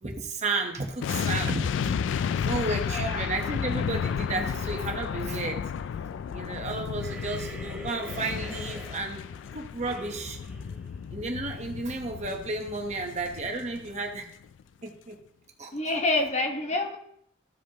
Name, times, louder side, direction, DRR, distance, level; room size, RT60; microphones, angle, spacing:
voice 1, 0.0-2.0 2.4-5.6 6.3-9.2 9.5-10.4 11.1-14.3 14.8-15.2 15.6-15.7, right 3 dB, 35° right, 3 dB, 1.0 m, -32 dB
sound 1, 1.0-14.2 14.4-14.6, left 7 dB, 75° left, 0.3 m, -32 dB
voice 2, 2.9-3.2 15.7-17.0, left 2 dB, 35° left, 3 dB, 1.1 m, -27 dB
sound 2, 7.0-11.7, equal, 5° right, 2.5 m, -44 dB
14.5 x 5.0 x 2.9 m, 0.68 s
head